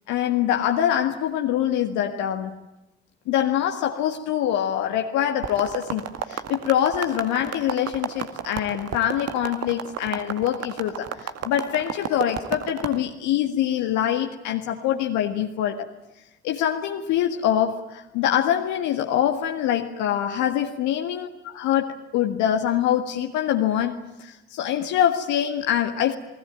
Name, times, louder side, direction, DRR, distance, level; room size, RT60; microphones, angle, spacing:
voice 1, 0.1-2.6 3.3-15.9 16.4-26.1, left 10 dB, 65° left, 1.8 m, -24 dB
sound 1, 5.4-13.0, right 8 dB, 50° right, 2.1 m, -32 dB
29.0 x 20.0 x 9.1 m
figure-of-eight pair, 50°, 32 cm